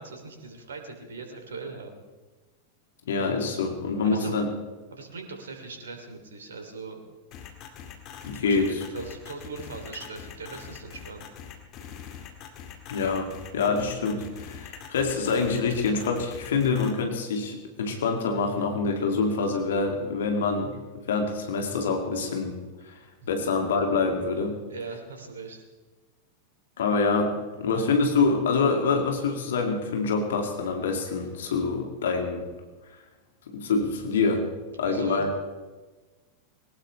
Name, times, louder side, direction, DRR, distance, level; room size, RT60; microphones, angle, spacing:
voice 1, 0.0-2.0 4.0-4.4 4.9-7.0 8.5-11.3 23.2-23.3 24.7-25.6 34.8-35.4, right 4 dB, 65° right, 4 dB, 3.0 m, -40 dB
voice 2, 3.1-4.5 8.3-8.7 12.9-20.7 21.1-22.6 22.9-23.0 23.3-24.6 26.8-32.4 33.5-34.4 34.8-35.3, left 4 dB, 60° left, 3 dB, 2.4 m, -26 dB
sound 1, 7.3-16.9, left 8 dB, 35° left, 2.2 m, -43 dB
21.0 x 19.0 x 3.3 m, 1.3 s
figure-of-eight pair, 90°, 0 cm